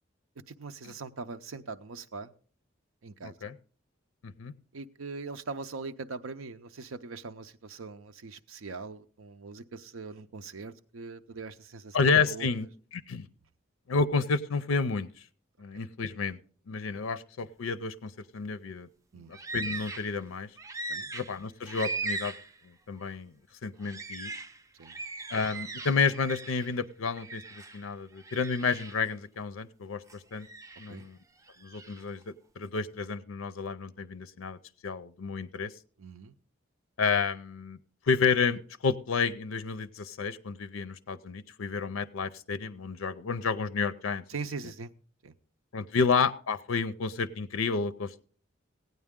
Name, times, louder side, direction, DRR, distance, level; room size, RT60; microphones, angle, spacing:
voice 1, 0.5-2.3 3.0-3.5 4.7-12.5 15.7-15.8 16.9-17.0 19.1-19.3 20.9-21.1 24.8-25.0 30.9-31.1 36.0-36.4 44.3-44.9 45.2-45.3, right 4 dB, 85° right, 9 dB, 0.6 m, -41 dB
voice 2, 3.2-3.5 4.2-4.5 11.9-12.7 12.9-13.3 13.9-15.1 15.6-16.4 16.7-18.9 19.3-20.5 21.1-22.3 22.9-23.3 23.6-24.3 25.3-30.0 30.3-30.5 30.8-31.2 31.6-34.6 34.8-35.7 37.0-37.8 38.1-44.2 45.7-48.1, left 5 dB, 90° left, 13 dB, 0.5 m, -30 dB
Yellow-tailed Black Cockatoos, 19.3-20.2 20.6-22.6 23.0-23.1 23.8-26.7 27.1-27.9 28.2-29.1 30.1-31.0 31.5-32.0, right 3 dB, 15° right, 0.4 m, -39 dB
16.0 x 9.3 x 3.6 m, 0.43 s
head